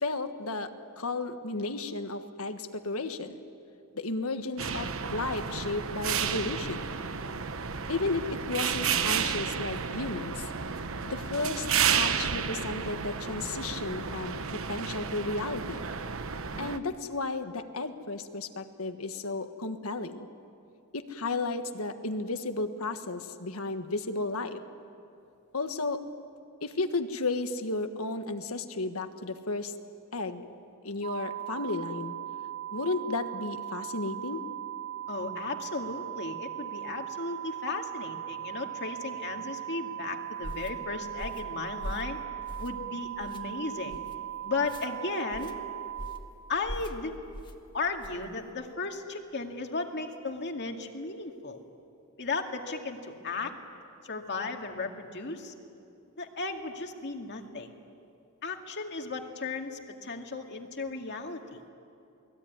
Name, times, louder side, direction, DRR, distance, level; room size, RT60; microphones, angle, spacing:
voice 1, 0.0-3.4 3.9-6.8 7.9-10.5 11.0-14.3 14.7-15.8 16.6-20.3 20.9-24.6 25.5-26.0 26.6-29.7 30.1-30.4 30.8-32.2 32.7-34.4, left 3 dB, 80° left, 8 dB, 1.5 m, -33 dB
sound 1, 4.6-16.8, right 7 dB, 70° right, 1.1 m, -32 dB
sound 2, 31.0-46.2, right 12 dB, 85° right, 1.4 m, -39 dB
voice 2, 35.1-42.2 42.6-44.0 44.4-45.6 46.5-47.1 47.7-51.6 52.2-53.5 54.0-55.5 56.2-57.7 58.4-61.6, left 3 dB, 55° left, 4 dB, 2.2 m, -35 dB
sound 3, 40.4-40.7 41.2-41.5 41.8-42.1 42.5-42.8 43.2-43.4 43.9-44.2 44.6-44.9 45.3-45.6 46.0-46.3 46.7-47.0 47.3-47.6 48.0-48.2, equal, 20° left, 1.6 m, -41 dB
29.0 x 20.5 x 9.6 m, 2.6 s
head